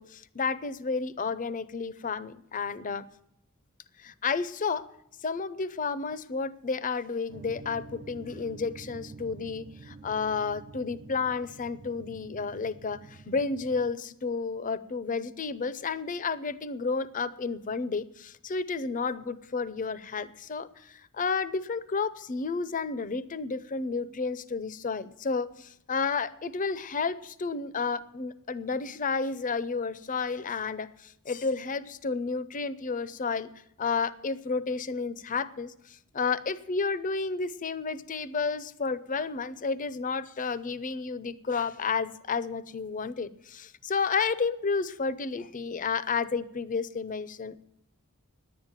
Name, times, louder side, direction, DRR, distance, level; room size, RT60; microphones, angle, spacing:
voice 1, 0.0-3.0 4.0-4.8 5.2-33.5 33.8-47.6, left 4 dB, 40° left, 16 dB, 0.6 m, -31 dB
sound 1, 7.3-13.9, right 3 dB, 40° right, 0.4 m, -48 dB
10.5 x 8.9 x 9.0 m, 0.78 s
head